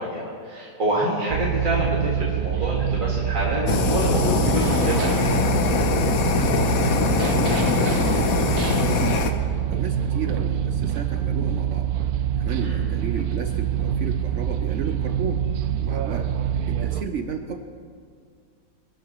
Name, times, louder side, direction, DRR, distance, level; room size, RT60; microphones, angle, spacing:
voice 1, 0.0-5.5 12.6-12.9, right 1 dB, 35° right, -5 dB, 1.9 m, -27 dB
sound 1, 1.3-17.0, right 9 dB, 80° right, 1.2 m, -25 dB
Fire, 3.7-9.3, left 6 dB, 70° left, 1.3 m, -23 dB
voice 2, 7.0-8.4 8.9-9.3 9.7-11.9 12.4-15.4 15.8-16.3 16.7-17.6, right 6 dB, 60° right, 5 dB, 1.0 m, -33 dB
24.0 x 12.5 x 3.0 m, 2.1 s
omnidirectional pair, 1.6 m